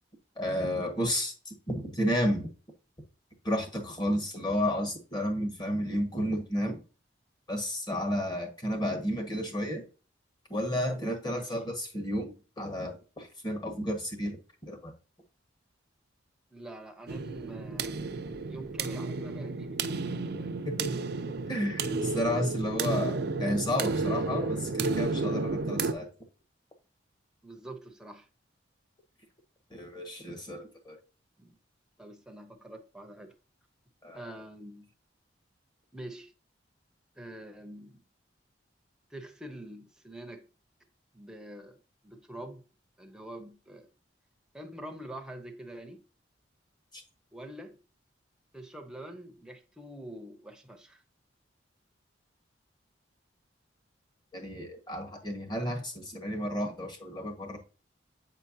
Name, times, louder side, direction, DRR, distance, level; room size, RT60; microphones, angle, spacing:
voice 1, 0.3-2.5 3.4-6.8 7.5-9.9 10.5-14.9 20.6-20.9 21.5-26.1 29.7-31.0 34.0-34.4 46.9-47.0 54.3-57.6, equal, 25° left, 1.5 m, -32 dB
voice 2, 11.2-11.6 16.5-18.0 18.5-19.8 20.4-20.5 27.4-28.3 31.4-31.5 32.0-33.3 34.1-34.9 35.9-36.3 37.2-38.0 39.1-40.5 41.1-42.6 43.0-43.9 44.5-46.0 47.3-47.8 48.5-51.0, right 1 dB, 5° right, 0.9 m, -45 dB
sound 1, 17.1-25.9, right 3 dB, 60° right, 0.6 m, -32 dB
7.9 x 4.5 x 2.7 m
head